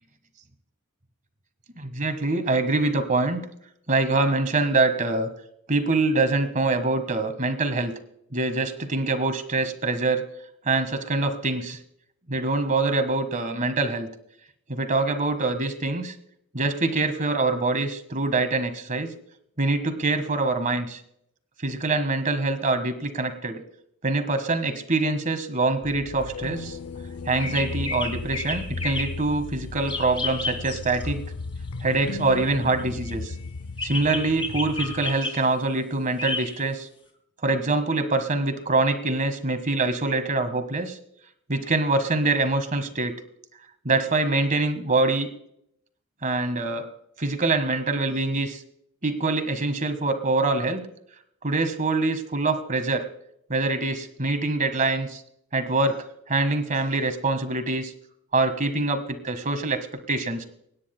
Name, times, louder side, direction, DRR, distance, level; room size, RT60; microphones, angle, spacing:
voice 1, 1.8-3.4 3.9-5.3 5.7-7.9 8.3-10.2 10.6-11.8 12.3-14.1 14.7-16.1 16.5-19.1 19.6-21.0 21.6-23.6 24.0-26.8 27.3-31.2 31.8-33.3 33.8-36.9 37.4-41.0 41.5-43.1 43.8-45.3 46.2-46.9 47.2-48.6 49.0-50.9 51.4-53.1 53.5-55.2 55.5-57.9 58.3-60.4, right 3 dB, 35° right, 9 dB, 1.5 m, -24 dB
sound 1, 25.8-35.2, left 3 dB, 75° left, 0.6 m, -36 dB
sound 2, 27.4-29.2 29.9-31.0 31.9-32.9 33.8-35.4 36.2-36.6, left 3 dB, 25° left, 3.1 m, -32 dB
25.5 x 9.8 x 2.2 m, 0.71 s
head